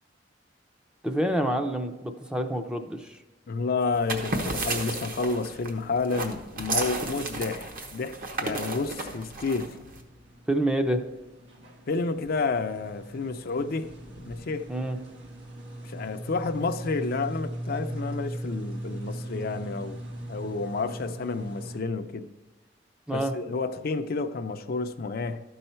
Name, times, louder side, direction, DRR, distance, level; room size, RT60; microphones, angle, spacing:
voice 1, 1.0-3.2 10.5-11.0 14.7-15.0 23.1-23.3, right 1 dB, 5° right, 6 dB, 0.5 m, -27 dB
voice 2, 3.5-9.8 11.9-13.9 14.3-14.7 15.8-20.0 20.3-22.3 23.1-25.4, left 4 dB, 55° left, 8 dB, 0.5 m, -30 dB
sound 1, 3.9-10.0, right 2 dB, 50° right, 1.1 m, -33 dB
sound 2, 9.3-21.8, right 1 dB, 90° right, 1.6 m, -39 dB
13.0 x 5.5 x 4.3 m, 1.1 s
head